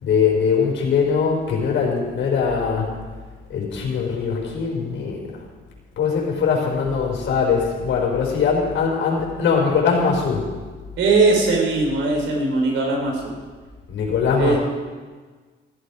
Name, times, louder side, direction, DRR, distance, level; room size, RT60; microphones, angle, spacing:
voice 1, 0.0-2.9 3.5-5.2 6.0-10.5 13.9-14.6, left 6 dB, 70° left, -1 dB, 5.0 m, -21 dB
voice 2, 11.0-13.2 14.4-14.6, right 3 dB, 80° right, 0 dB, 4.9 m, -19 dB
14.5 x 14.5 x 5.0 m, 1.4 s
cardioid pair, 90°, 20 cm